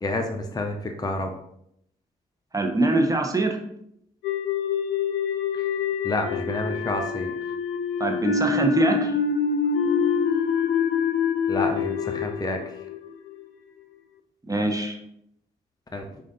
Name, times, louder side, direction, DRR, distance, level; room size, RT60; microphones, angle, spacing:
voice 1, 0.0-1.3 5.5-5.6 6.0-7.3 11.5-12.6 15.9-16.1, left 2 dB, 20° left, 4 dB, 0.6 m, -29 dB
voice 2, 2.5-3.6 8.0-9.1 14.5-15.0, right 2 dB, 15° right, 2 dB, 1.0 m, -23 dB
sound 1, 4.2-13.5, left 6 dB, 65° left, 0.5 m, -26 dB
5.0 x 2.6 x 3.9 m, 0.75 s
hypercardioid pair, 45°, 20 cm